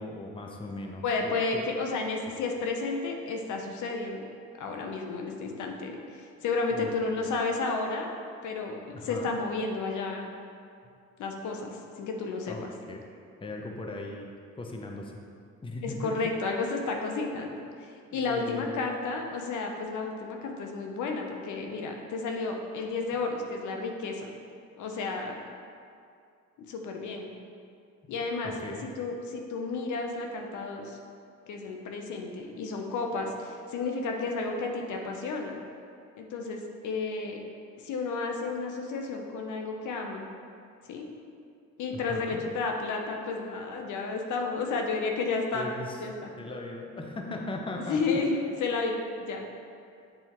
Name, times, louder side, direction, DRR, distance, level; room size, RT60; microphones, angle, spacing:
voice 1, 0.0-1.3 6.7-6.9 7.2-7.3 8.9-9.3 12.5-12.6 12.9-13.0 13.4-15.2 15.6-16.1 18.1-18.8 28.0-28.1 28.4-28.9 42.1-42.4 45.5-46.0 46.4-48.2, left 2 dB, 15° left, 1 dB, 0.6 m, -38 dB
voice 2, 1.0-4.3 4.6-8.1 8.4-10.3 11.2-12.5 15.8-24.3 24.8-25.4 26.7-27.3 28.1-28.5 28.8-31.0 31.5-35.6 36.2-37.4 37.8-40.3 40.9-41.1 41.8-45.7 46.0-46.3 47.9-49.4, left 3 dB, 75° left, 2 dB, 0.8 m, -32 dB
7.9 x 4.3 x 2.9 m, 2.3 s
cardioid pair, 90°, 30 cm